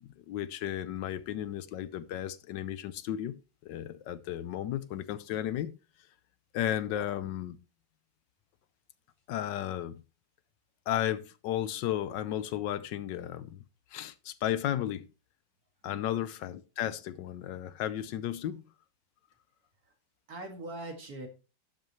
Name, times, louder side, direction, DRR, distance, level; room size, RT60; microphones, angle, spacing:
voice 1, 0.0-3.4 3.6-5.7 6.5-7.6 9.3-10.0 10.9-13.6 13.9-15.1 15.8-18.6, left 11 dB, 75° left, 1.3 m, -34 dB
voice 2, 20.3-21.3, right 2 dB, 50° right, 2.5 m, -42 dB
12.0 x 7.9 x 3.1 m
omnidirectional pair, 2.1 m